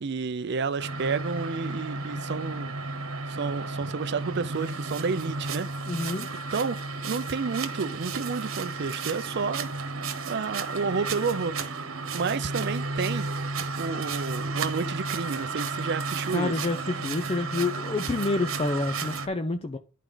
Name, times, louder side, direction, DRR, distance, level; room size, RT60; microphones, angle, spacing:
voice 1, 0.0-2.7 3.3-5.7 6.5-9.7 10.3-11.8 12.1-13.3 13.8-16.5, right 5 dB, 55° right, 0.5 m, -30 dB
sound 1, 0.8-19.3, right 3 dB, 80° right, 1.2 m, -33 dB
voice 2, 5.9-6.3 16.3-19.8, left 3 dB, 30° left, 0.5 m, -28 dB
11.0 x 4.6 x 3.9 m
head